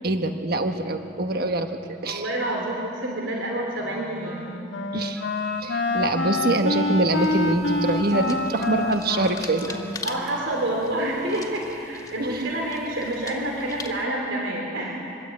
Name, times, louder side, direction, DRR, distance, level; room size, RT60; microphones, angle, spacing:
voice 1, 0.0-1.8 2.0-2.2 4.9-5.2 5.6-9.7 12.2-12.5, right 2 dB, 55° right, 6 dB, 1.2 m, -24 dB
voice 2, 2.0-4.4 9.7-15.0, right 1 dB, 85° right, -1 dB, 3.4 m, -28 dB
Wind instrument woodwind instrument, 3.7-10.9, left 2 dB, 70° left, 1.4 m, -28 dB
Wind instrument woodwind instrument 2, 5.1-9.8, right 1 dB, 5° left, 4.0 m, -43 dB
sound 1, 7.1-14.1, left 3 dB, 20° left, 2.1 m, -42 dB
25.0 x 23.0 x 8.6 m, 2.8 s
head